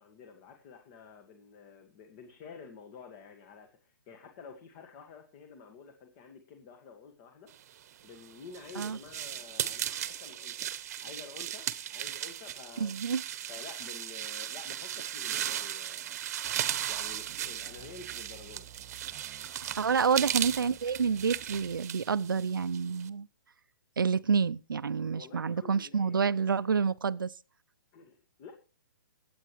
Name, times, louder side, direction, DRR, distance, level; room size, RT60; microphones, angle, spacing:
voice 1, 0.0-7.5 8.0-10.7 11.0-13.0 13.5-16.3 16.6-18.7 20.1-20.4 25.1-26.3 27.9-28.5, left 5 dB, 35° left, 1.8 m, -50 dB
sound 1, 7.9-23.1, right 11 dB, 50° right, 1.0 m, -36 dB
voice 2, 12.8-13.2 19.6-23.3 24.0-27.3, right 6 dB, 90° right, 0.5 m, -28 dB
sound 2, 16.4-21.8, right 9 dB, 25° right, 1.4 m, -54 dB
22.0 x 8.7 x 3.2 m
hypercardioid pair, 140°, 11 cm